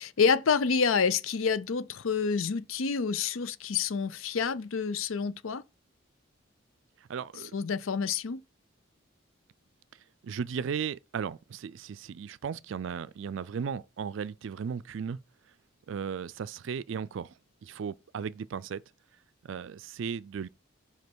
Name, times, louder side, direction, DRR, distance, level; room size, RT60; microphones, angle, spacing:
voice 1, 0.0-5.6 7.5-8.4, left 5 dB, 85° left, 0.6 m, -28 dB
voice 2, 7.1-7.5 10.2-15.2 15.9-17.3 17.6-18.8 19.4-20.5, right 6 dB, 70° right, 0.4 m, -36 dB
5.3 x 5.1 x 6.1 m
head